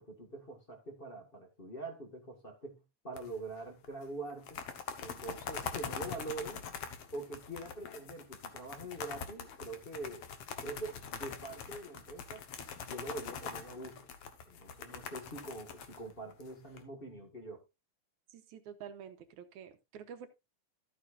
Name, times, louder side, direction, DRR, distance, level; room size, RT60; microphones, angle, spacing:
voice 1, 0.0-4.6 5.0-6.6 7.1-10.2 10.6-12.5 12.9-14.1 14.4-17.6, right 2 dB, 25° left, 1.2 m, -44 dB
sound 1, 3.2-3.6 3.8-3.9 4.3-16.8, left 7 dB, 60° left, 2.0 m, -43 dB
voice 2, 18.3-20.3, right 8 dB, 75° right, 2.3 m, -48 dB
13.0 x 8.6 x 2.5 m
omnidirectional pair, 3.7 m